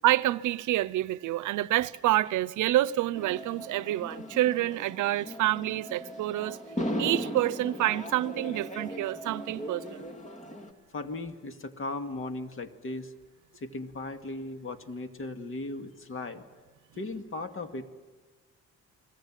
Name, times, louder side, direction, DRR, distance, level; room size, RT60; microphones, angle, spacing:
voice 1, 0.0-6.6 7.0-10.1, right 15 dB, 80° right, 0.7 m, -27 dB
sound 1, 3.1-10.7, equal, 25° left, 2.6 m, -38 dB
voice 2, 10.9-13.1 13.6-16.4 17.0-17.9, left 2 dB, 45° left, 2.2 m, -37 dB
29.5 x 21.5 x 7.5 m
cardioid pair, 90°, 30 cm